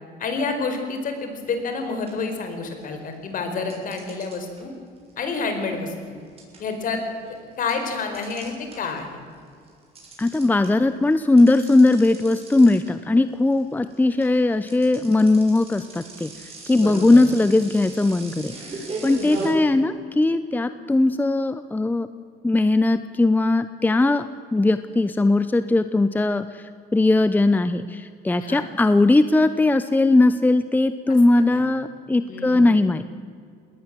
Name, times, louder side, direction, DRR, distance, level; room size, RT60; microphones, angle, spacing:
voice 1, 0.2-4.7 5.2-5.9 6.6-7.0 7.6-9.1 16.7-17.2 19.2-19.6 28.4-28.6 31.4-31.6 32.3-32.7, left 4 dB, 55° left, 6 dB, 4.7 m, -29 dB
sound 1, 1.5-1.7 2.1-3.0 3.7-9.1 9.4-19.5, right 3 dB, 35° right, 7.1 m, -38 dB
voice 2, 10.2-16.3 16.7-18.5 19.0-22.1 22.4-24.2 24.5-33.1, left 2 dB, 10° left, 12 dB, 0.7 m, -19 dB
21.5 x 18.5 x 7.7 m, 2.2 s
cardioid pair, 110°, 17 cm